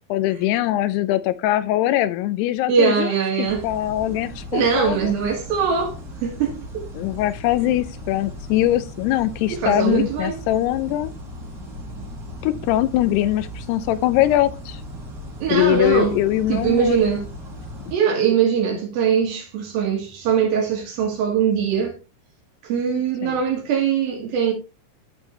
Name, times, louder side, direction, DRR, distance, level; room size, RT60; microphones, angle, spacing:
voice 1, 0.1-3.1 3.4-5.1 7.0-11.1 12.4-14.8 15.5-17.0 23.2-23.4, left 14 dB, 85° left, 2.6 m, -22 dB
voice 2, 2.7-3.7 4.5-6.9 9.5-10.3 15.4-16.2 16.5-17.3 17.9-22.0 22.6-24.5, right 6 dB, 65° right, 4.1 m, -21 dB
sound 1, 3.4-17.9, equal, 35° right, 2.1 m, -37 dB
13.0 x 4.4 x 3.2 m
omnidirectional pair, 4.8 m